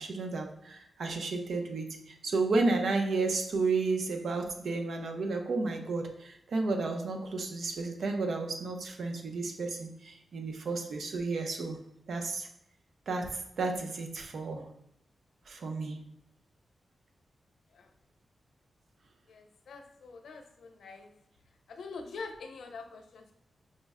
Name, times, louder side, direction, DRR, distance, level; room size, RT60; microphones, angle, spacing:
voice 1, 0.0-11.8 12.1-12.5 13.1-14.7 15.5-16.0, right 3 dB, 70° right, 4 dB, 0.6 m, -32 dB
voice 2, 19.3-21.1 21.7-23.3, left 4 dB, 90° left, 5 dB, 0.5 m, -45 dB
5.2 x 2.1 x 3.5 m, 0.76 s
wide cardioid pair, 150°, 0 cm